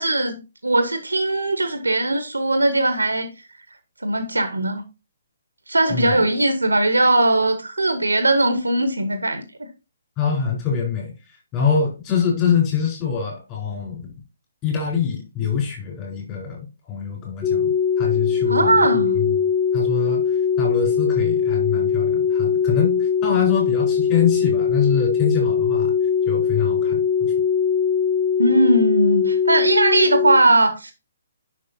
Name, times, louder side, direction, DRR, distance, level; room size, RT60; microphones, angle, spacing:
voice 1, 0.0-3.3 4.0-4.8 5.7-9.4 18.5-19.2 28.4-30.9, right 2 dB, 80° right, 1.1 m, -19 dB
voice 2, 5.9-6.2 10.2-14.1 14.6-19.4 19.7-25.9 26.3-27.3, left 6 dB, 25° left, 4.3 m, -24 dB
sound 1, 17.4-30.4, left 7 dB, 5° left, 1.0 m, -21 dB
9.8 x 6.0 x 2.7 m
figure-of-eight pair, 135°, 0 cm